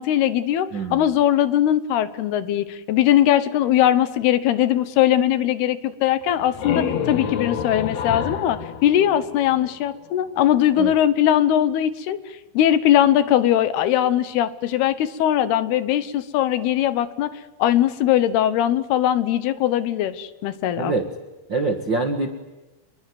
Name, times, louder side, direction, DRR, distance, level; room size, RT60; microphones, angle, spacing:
voice 1, 0.0-12.2 12.5-17.3 17.6-20.9, left 11 dB, 75° left, 14 dB, 3.0 m, -20 dB
voice 2, 0.7-1.0 10.8-10.9 20.8-21.1 21.5-22.3, right 3 dB, 50° right, 5 dB, 1.4 m, -24 dB
sound 1, 6.2-9.9, left 7 dB, 55° left, 2.3 m, -28 dB
28.0 x 22.5 x 9.4 m, 1.1 s
omnidirectional pair, 4.8 m